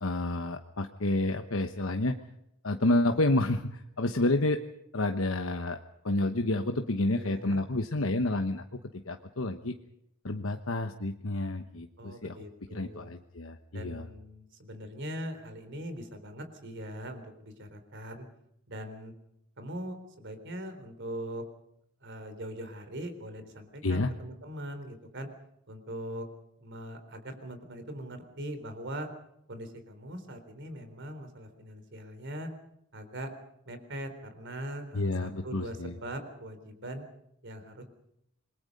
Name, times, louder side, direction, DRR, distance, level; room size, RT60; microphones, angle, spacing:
voice 1, 0.0-2.2 2.6-4.6 4.9-5.8 6.0-8.6 9.0-9.8 10.2-12.4 12.7-14.1 23.8-24.1 34.9-35.9, left 2 dB, 70° left, 6 dB, 1.1 m, -29 dB
voice 2, 7.1-7.6 12.0-13.1 13.7-18.2 18.7-19.1 19.6-21.4 22.0-25.3 25.7-26.3 26.6-29.1 29.5-32.5 32.9-33.3 33.7-37.0 37.4-37.8, right 1 dB, 60° right, 9 dB, 3.9 m, -41 dB
27.5 x 21.5 x 5.4 m, 0.78 s
head